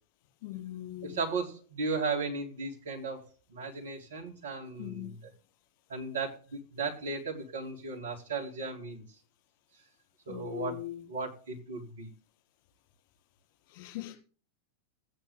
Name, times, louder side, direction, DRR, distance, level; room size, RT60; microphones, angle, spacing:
voice 1, 0.4-1.2 4.8-5.1 10.3-11.0 13.7-14.2, left 15 dB, 45° left, 4.2 m, -40 dB
voice 2, 1.0-3.2 3.5-5.3 5.9-9.0 10.3-12.1, right 4 dB, 65° right, 3.8 m, -36 dB
14.0 x 9.0 x 3.9 m
figure-of-eight pair, 90°, 0 cm